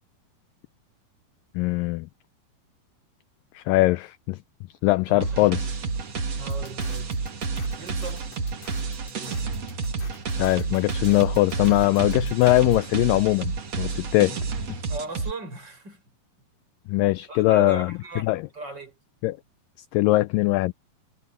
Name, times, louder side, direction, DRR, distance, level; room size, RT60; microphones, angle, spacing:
voice 1, 1.6-2.1 3.6-4.4 4.8-5.8 10.4-14.4 16.9-17.9 18.2-18.4 19.2-19.4 19.9-20.7, left 19 dB, 85° left, 2.0 m, -21 dB
voice 2, 5.1-5.5 6.4-7.1 7.8-8.6 14.9-16.0 17.3-19.0, right 3 dB, 25° right, 6.7 m, -38 dB
sound 1, 5.2-15.3, right 4 dB, 45° right, 3.3 m, -30 dB
sound 2, 6.5-12.8, left 5 dB, 60° left, 6.1 m, -49 dB
omnidirectional pair, 4.4 m